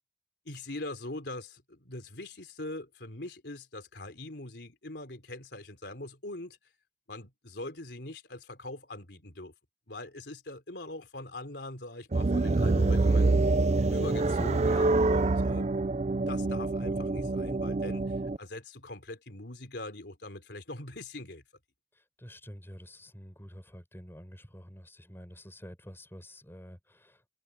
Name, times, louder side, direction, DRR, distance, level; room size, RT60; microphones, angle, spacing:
voice 1, 0.5-6.6 7.1-9.5 9.9-13.4 13.9-15.8 16.2-21.4, left 2 dB, 70° left, 4.0 m, -42 dB
sound 1, 12.1-18.4, right 3 dB, 40° right, 0.5 m, -26 dB
voice 2, 21.9-27.2, equal, 15° left, 6.7 m, -48 dB
head